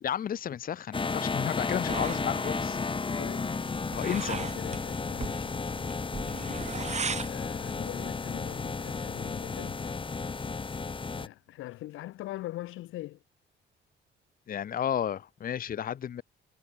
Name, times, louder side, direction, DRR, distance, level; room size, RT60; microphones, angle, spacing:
voice 1, 0.0-2.8 3.9-4.4 14.5-16.2, left 9 dB, 45° left, 0.7 m, -32 dB
sound 1, 0.9-11.3, left 4 dB, 25° left, 1.3 m, -33 dB
sound 2, 1.9-7.4, right 5 dB, 35° right, 1.9 m, -39 dB
voice 2, 3.2-3.5 4.0-5.5 7.2-10.0 11.1-13.2, left 16 dB, 85° left, 1.2 m, -42 dB
cardioid pair, 90°, 20 cm